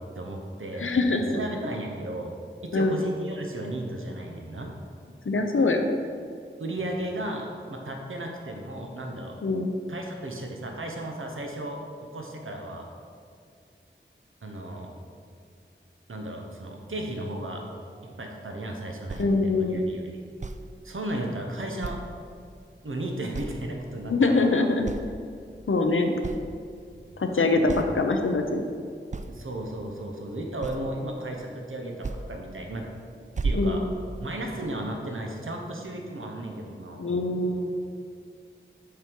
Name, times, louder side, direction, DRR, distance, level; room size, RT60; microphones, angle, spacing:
voice 1, 0.1-0.9 1.3-2.3 2.6-4.7 6.6-9.4 9.9-11.8 12.1-12.9 14.4-14.9 16.1-17.6 18.0-20.2 20.8-22.0 22.8-24.7 26.9-27.0 27.5-27.8 29.3-32.9 33.4-33.8 34.2-37.0, right 1 dB, 80° right, 1 dB, 0.9 m, -35 dB
voice 2, 0.8-1.3 2.7-3.0 5.3-5.9 9.4-9.7 19.2-19.8 24.1-24.9 25.7-26.2 27.2-28.6 33.5-33.8 37.0-37.7, left 3 dB, 80° left, 5 dB, 0.7 m, -23 dB
sound 1, 19.1-19.3 20.4-20.6 21.8-22.2 22.6-22.7 23.3-23.7 24.1-24.5 24.8-25.2 25.8-25.9 26.2-26.5 27.2-27.3 27.7-27.9 29.1-29.4 30.6-31.0 32.0-32.2 32.7-32.9 33.3-34.3, right 3 dB, 35° right, 0.4 m, -32 dB
6.7 x 5.2 x 4.6 m, 2.3 s
wide cardioid pair, 45°, 21 cm